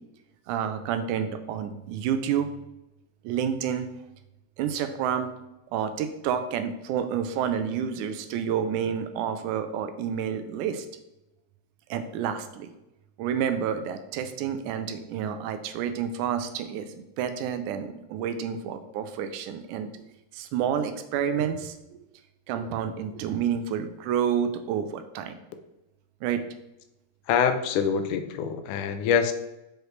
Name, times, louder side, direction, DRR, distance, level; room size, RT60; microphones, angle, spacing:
voice 1, 0.5-2.5 3.2-3.9 4.6-5.3 5.7-10.9 11.9-12.7 13.2-20.0 20.3-22.0 22.5-25.4 26.2-26.4, right 8 dB, 90° right, 9 dB, 2.1 m, -29 dB
voice 2, 27.3-29.3, left 7 dB, 90° left, 8 dB, 2.2 m, -25 dB
6.3 x 4.9 x 3.1 m, 0.92 s
omnidirectional pair, 3.5 m